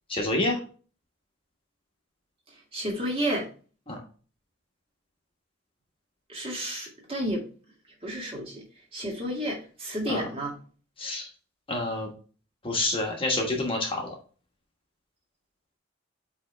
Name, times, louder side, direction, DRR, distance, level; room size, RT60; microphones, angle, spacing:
voice 1, 0.1-0.6 3.9-4.0 10.1-10.3 11.0-11.3 11.7-12.1 12.6-14.1, left 2 dB, 25° left, 1 dB, 1.3 m, -28 dB
voice 2, 2.7-3.5 6.3-7.5 8.0-8.6 8.9-10.5, equal, 30° right, -1 dB, 1.9 m, -31 dB
8.2 x 3.5 x 3.2 m, 0.38 s
head